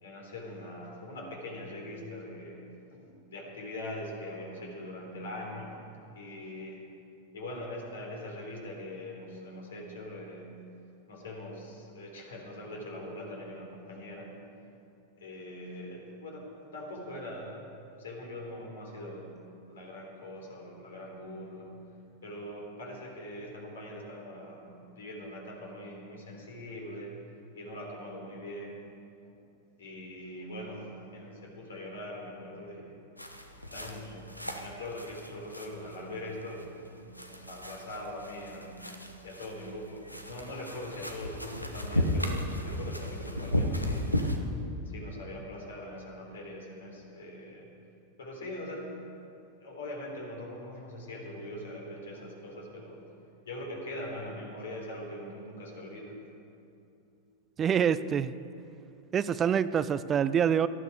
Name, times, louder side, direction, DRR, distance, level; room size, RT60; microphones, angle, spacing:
voice 1, 0.0-2.6 2.9-5.7 6.1-6.8 7.3-10.6 11.1-14.5 15.2-16.4 16.7-17.7 18.0-19.3 19.6-21.8 22.2-27.1 27.5-28.8 29.2-29.3 29.8-33.0 33.7-38.8 39.2-44.3 44.9-47.7 48.2-48.9 49.6-53.0 53.4-56.2, left 1 dB, 65° left, 0 dB, 3.9 m, -42 dB
sound 1, 33.2-44.4, left 1 dB, 85° left, 1.2 m, -35 dB
voice 2, 57.6-58.3 59.1-60.7, right 8 dB, 25° right, 15 dB, 0.4 m, -26 dB
18.5 x 13.0 x 4.9 m, 2.7 s
figure-of-eight pair, 90°, 0 cm